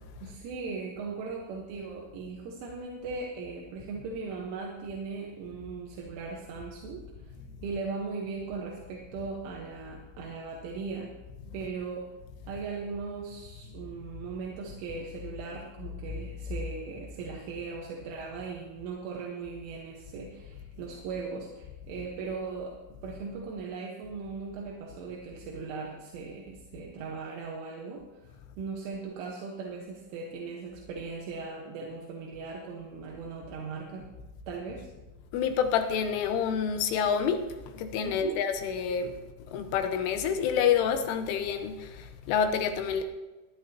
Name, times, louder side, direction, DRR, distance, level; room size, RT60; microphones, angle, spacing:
voice 1, 0.2-7.1 7.6-11.2 11.5-12.1 12.5-22.8 23.0-28.3 28.6-34.1 34.5-34.9 38.0-38.4, right 4 dB, 80° right, -1 dB, 3.7 m, -38 dB
voice 2, 35.3-37.5 37.7-39.1 39.5-43.0, left 7 dB, 85° left, 6 dB, 3.5 m, -28 dB
21.5 x 11.0 x 2.9 m, 1.1 s
omnidirectional pair, 5.7 m